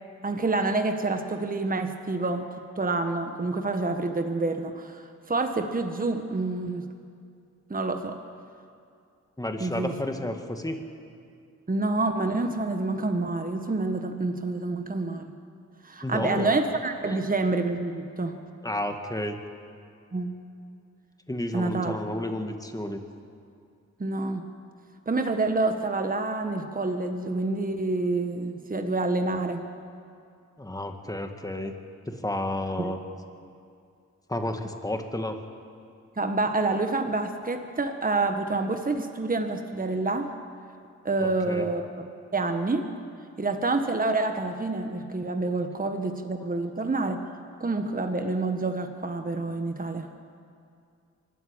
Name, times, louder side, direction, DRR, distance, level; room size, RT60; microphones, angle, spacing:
voice 1, 0.2-2.5 2.8-6.9 7.7-8.2 9.6-9.9 11.7-15.3 15.8-18.4 20.1-20.4 21.5-22.1 24.0-24.5 25.1-29.7 32.8-32.9 36.2-40.3 41.0-42.9 43.4-47.2 47.6-50.1, right 3 dB, 30° right, 6 dB, 1.4 m, -28 dB
voice 2, 9.4-10.8 16.0-16.6 17.1-17.2 18.6-19.4 21.3-23.0 30.6-31.7 32.1-33.0 34.3-35.4 41.2-41.7, left 1 dB, 10° left, 5 dB, 2.0 m, -31 dB
23.5 x 13.5 x 8.8 m, 2.4 s
cardioid pair, 55°, 29 cm